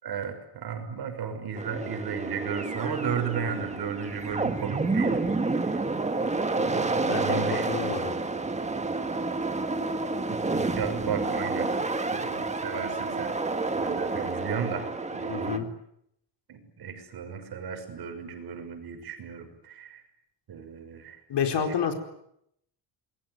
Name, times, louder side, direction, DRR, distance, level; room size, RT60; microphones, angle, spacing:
voice 1, 0.0-5.8 6.6-7.7 10.3-13.3 13.8-14.8 15.1-15.7 16.5-20.0 20.5-21.2 21.6-21.7, right 7 dB, 55° right, 6 dB, 6.2 m, -35 dB
sound 1, 1.5-15.6, right 3 dB, 15° right, 1.7 m, -29 dB
voice 2, 7.0-8.1 15.3-15.7 21.3-21.9, left 7 dB, 65° left, 6 dB, 4.6 m, -29 dB
27.5 x 22.0 x 9.7 m, 0.75 s
wide cardioid pair, 175°, 45 cm